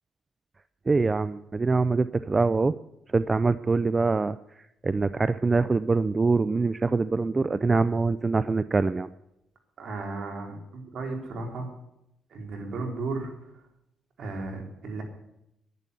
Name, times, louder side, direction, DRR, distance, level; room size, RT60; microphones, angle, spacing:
voice 1, 0.9-2.8 3.1-4.4 4.8-9.1, right 3 dB, 25° right, 14 dB, 0.4 m, -24 dB
voice 2, 9.8-11.7 12.3-13.3 14.2-15.0, right 3 dB, 60° right, 2 dB, 3.8 m, -34 dB
11.0 x 10.5 x 8.2 m, 0.83 s
cardioid pair, 90°, 0 cm